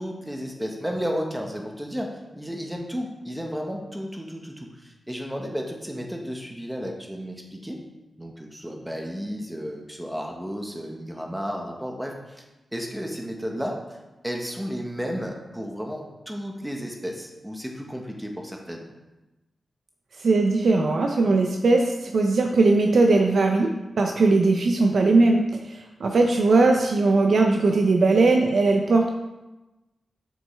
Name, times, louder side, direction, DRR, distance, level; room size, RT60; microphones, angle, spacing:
voice 1, 0.0-7.8 8.2-12.4 12.7-13.8 14.2-18.9, equal, 5° right, 1 dB, 1.2 m, -33 dB
voice 2, 20.2-23.7 24.0-29.1, right 3 dB, 70° right, 3 dB, 0.6 m, -19 dB
7.7 x 6.2 x 3.4 m, 1.1 s
wide cardioid pair, 90°, 0 cm